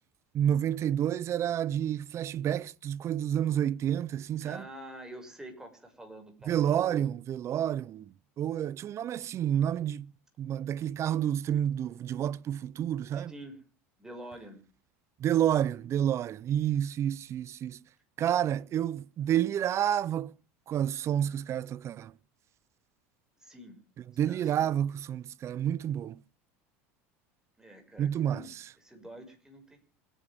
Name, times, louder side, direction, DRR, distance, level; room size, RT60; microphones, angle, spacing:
voice 1, 0.3-4.6 6.5-10.1 10.4-13.3 15.2-17.8 18.2-20.3 20.7-22.1 24.2-26.2 28.0-28.7, right 10 dB, 40° right, 0.7 m, -29 dB
voice 2, 4.4-7.1 13.1-13.6 14.0-14.6 23.4-23.8 24.3-24.7 27.6-28.5 28.8-29.8, right 1 dB, 10° right, 6.4 m, -47 dB
28.0 x 10.0 x 3.7 m
supercardioid pair, 100°, 7 cm